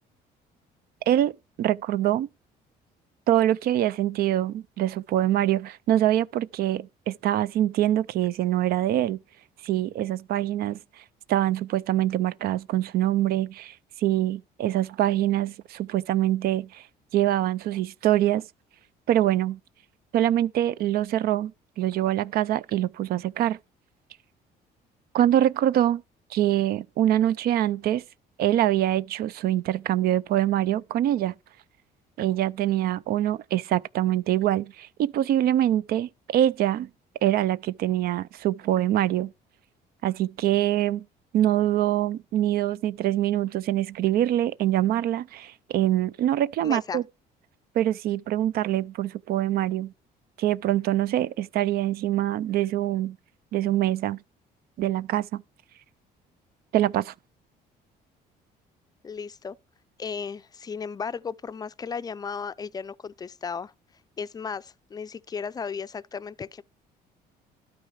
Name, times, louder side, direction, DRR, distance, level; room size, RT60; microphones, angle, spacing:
voice 1, 1.1-2.3 3.3-9.2 9.6-10.8 11.3-16.8 17.1-18.4 19.1-19.6 20.1-21.5 21.8-23.6 25.1-26.0 26.3-28.0 28.4-31.4 32.2-36.9 37.2-39.3 40.0-41.0 41.3-47.0 47.8-49.9 50.4-53.2 53.5-54.2 54.8-55.4 56.7-57.1, right 12 dB, 65° right, 0.4 m, -24 dB
voice 2, 46.6-47.0 59.0-59.6 60.0-63.7 64.2-66.6, left 6 dB, 25° left, 0.4 m, -35 dB
12.0 x 4.7 x 4.8 m
cardioid pair, 110°, 17 cm